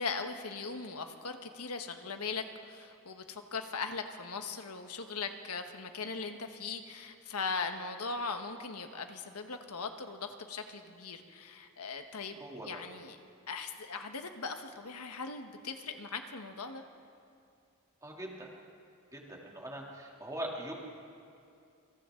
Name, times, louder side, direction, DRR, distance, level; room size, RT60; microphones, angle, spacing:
voice 1, 0.0-13.2 13.5-16.8, left 4 dB, 85° left, 6 dB, 1.4 m, -39 dB
voice 2, 12.4-12.8 18.0-18.5 19.1-20.7, right 1 dB, 15° right, -2 dB, 2.9 m, -41 dB
28.0 x 25.0 x 3.9 m, 2.5 s
head